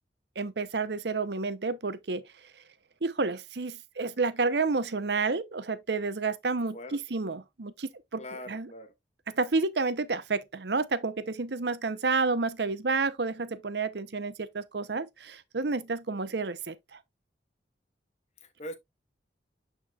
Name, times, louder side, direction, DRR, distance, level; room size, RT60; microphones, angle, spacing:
voice 1, 0.4-2.2 3.0-8.7 9.3-17.0, right 4 dB, 65° right, 0.8 m, -30 dB
voice 2, 8.2-8.9 16.1-16.3 18.4-18.7, left 1 dB, 40° left, 1.2 m, -42 dB
9.8 x 4.5 x 2.4 m
head